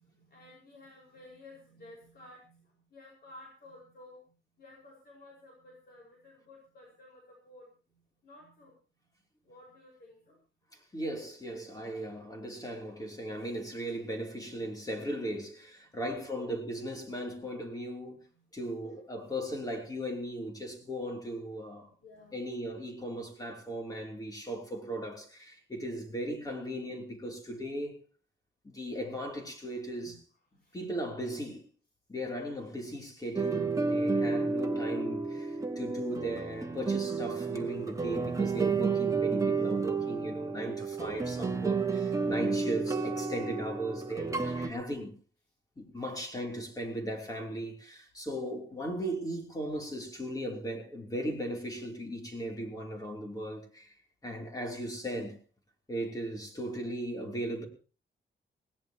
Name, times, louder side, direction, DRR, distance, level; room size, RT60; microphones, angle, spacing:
voice 1, 0.0-4.2 4.6-7.7 8.2-8.8 9.4-10.4 16.0-16.5 18.3-18.4 18.8-19.3 22.0-22.4 30.0-30.2 30.5-30.8 35.5-35.6 40.3-40.5 46.0-46.2 56.5-56.9, left 2 dB, 55° left, 5.3 m, -54 dB
voice 2, 10.7-18.2 18.5-21.9 22.3-28.0 28.6-30.2 30.7-31.6 32.1-45.1 45.8-53.9 54.2-55.4 55.9-57.7, right 1 dB, 20° left, 3.2 m, -37 dB
sound 1, 33.4-44.7, right 4 dB, 15° right, 1.6 m, -31 dB
20.0 x 18.0 x 3.0 m
wide cardioid pair, 145°, 19 cm